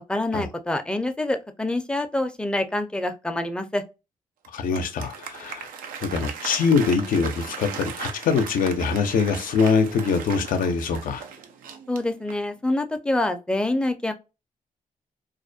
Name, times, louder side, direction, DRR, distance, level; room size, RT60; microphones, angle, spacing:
voice 1, 0.1-3.8 11.9-14.1, left 1 dB, 5° left, 0.5 m, -26 dB
Applause, 4.4-12.6, right 6 dB, 85° right, 0.4 m, -37 dB
voice 2, 4.5-5.7 6.0-11.2, left 5 dB, 75° left, 0.5 m, -23 dB
2.4 x 2.1 x 2.5 m
cardioid pair, 60°, 14 cm